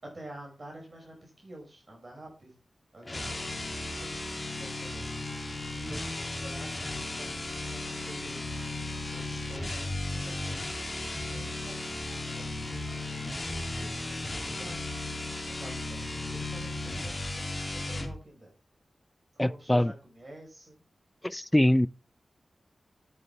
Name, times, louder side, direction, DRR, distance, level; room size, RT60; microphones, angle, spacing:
voice 1, 0.0-2.5 2.9-3.4 3.9-5.3 5.9-7.4 7.7-8.7 9.1-10.6 11.0-11.7 12.0-12.8 13.8-14.9 15.6-18.5 19.4-20.8, right 1 dB, 40° right, 5.7 m, -49 dB
sound 1, 3.0-18.2, left 2 dB, 30° left, 2.6 m, -35 dB
voice 2, 19.4-19.9 21.2-21.9, left 1 dB, 15° left, 0.5 m, -23 dB
9.6 x 9.6 x 3.3 m
cardioid pair, 55°, 0 cm